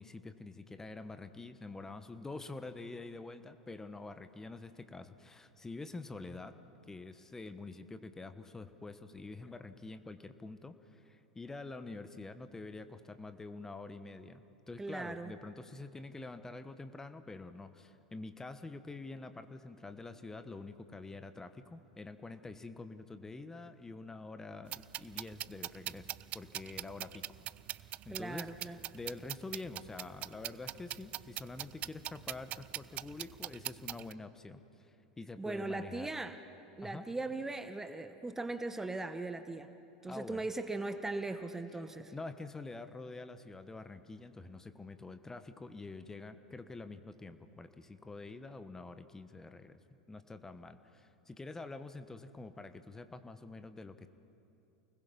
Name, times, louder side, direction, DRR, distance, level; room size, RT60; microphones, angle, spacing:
voice 1, 0.0-6.6 6.9-27.2 27.8-36.1 36.8-37.0 40.1-40.5 42.1-49.8 50.1-54.1, left 3 dB, 15° left, 10 dB, 1.2 m, -47 dB
voice 2, 14.8-15.3 28.1-28.8 35.4-36.3 36.8-39.7 40.0-42.1, right 2 dB, 10° right, 9 dB, 1.0 m, -39 dB
sound 1, 24.7-34.1, right 14 dB, 40° right, 0.4 m, -43 dB
29.0 x 20.5 x 5.5 m, 2.6 s
hypercardioid pair, 85°, 4 cm